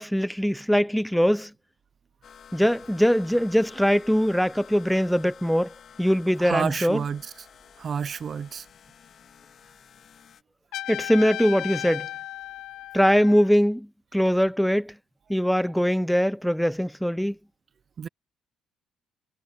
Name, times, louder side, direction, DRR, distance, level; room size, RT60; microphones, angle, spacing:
voice 1, 0.0-1.5 2.5-5.7 6.0-7.0 10.9-12.1 12.9-14.9 15.3-17.4, equal, ahead, 0.8 m, -22 dB
sound 1, 2.2-10.4, left 8 dB, 55° left, 3.9 m, -51 dB
voice 2, 6.4-7.3 7.8-8.6 18.0-18.1, right 7 dB, 50° right, 0.7 m, -29 dB
Trumpet, 10.7-13.6, left 15 dB, 75° left, 0.5 m, -35 dB
supercardioid pair, 75°, 0 cm